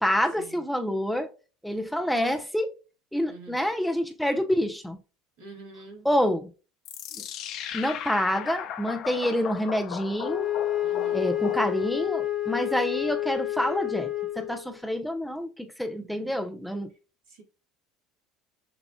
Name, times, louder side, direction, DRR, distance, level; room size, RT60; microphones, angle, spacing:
voice 1, 0.0-1.3 1.6-2.7 3.1-5.0 6.0-6.5 7.7-10.5 11.1-14.1 14.4-16.9, equal, ahead, 0.7 m, -27 dB
voice 2, 5.4-6.0 10.8-11.4 16.0-16.3 17.3-17.4, right 3 dB, 65° right, 1.6 m, -46 dB
sound 1, 6.9-12.2, left 9 dB, 50° left, 0.4 m, -37 dB
Wind instrument woodwind instrument, 10.2-14.8, left 12 dB, 35° left, 1.4 m, -29 dB
6.7 x 2.4 x 2.3 m
figure-of-eight pair, 65°, 0 cm